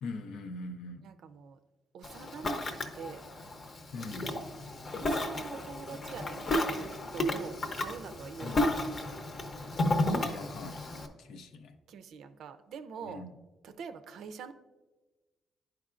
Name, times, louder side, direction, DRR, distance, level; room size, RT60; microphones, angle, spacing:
voice 1, 0.0-1.1 3.9-4.3 8.4-8.7 10.1-10.9 11.2-11.7 13.0-13.3, left 2 dB, 80° left, 8 dB, 0.5 m, -42 dB
voice 2, 1.0-1.6 1.9-3.2 4.9-8.8 11.9-13.2 13.6-14.5, right 6 dB, 75° right, 9 dB, 0.5 m, -45 dB
Ocean, 2.0-11.1, left 1 dB, 45° left, 0.8 m, -33 dB
10.5 x 4.6 x 2.5 m, 1.2 s
cardioid pair, 90°, 0 cm